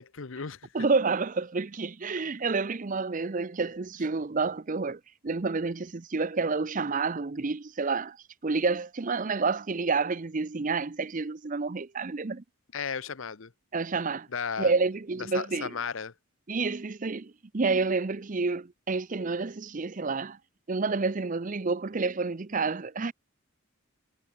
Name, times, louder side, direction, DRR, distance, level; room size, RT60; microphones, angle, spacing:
voice 1, 0.0-0.7 12.7-13.5 14.3-14.7 15.3-16.1, left 6 dB, 65° left, 0.8 m, -35 dB
voice 2, 0.7-8.2 8.4-12.4 13.7-14.3 14.6-15.7 16.5-20.4 20.7-23.1, right 4 dB, 35° right, 0.6 m, -29 dB
head